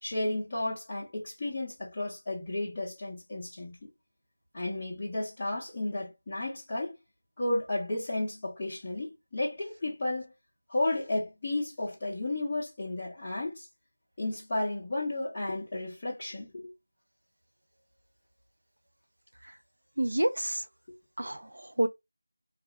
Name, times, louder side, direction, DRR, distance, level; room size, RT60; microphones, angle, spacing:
voice 1, 0.0-3.9 4.5-7.0 7.4-10.3 10.7-13.7 14.2-16.7, left 2 dB, 10° left, 0.6 m, -33 dB
voice 2, 20.0-20.6 21.2-21.9, right 1 dB, 65° right, 0.7 m, -28 dB
2.4 x 2.3 x 2.8 m
figure-of-eight pair, 180°, 0 cm